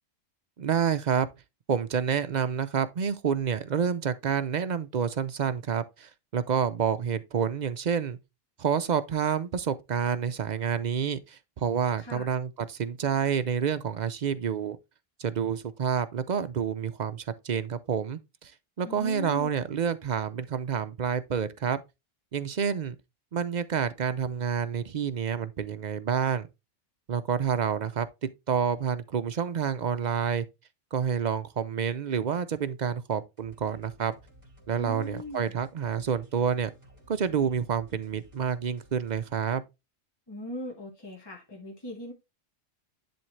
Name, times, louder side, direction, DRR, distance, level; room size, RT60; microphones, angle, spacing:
voice 1, 0.6-1.3 1.7-8.2 8.6-14.8 15.2-18.5 18.8-21.8 22.3-23.0 23.3-26.5 27.1-30.5 30.9-34.2 34.7-36.7 37.1-39.6, right 7 dB, 50° right, 0.6 m, -28 dB
voice 2, 18.8-19.5 34.7-35.4 40.3-42.1, equal, 20° left, 1.4 m, -39 dB
sound 1, 33.4-39.4, right 1 dB, 30° right, 2.3 m, -56 dB
10.5 x 3.6 x 3.2 m
omnidirectional pair, 1.1 m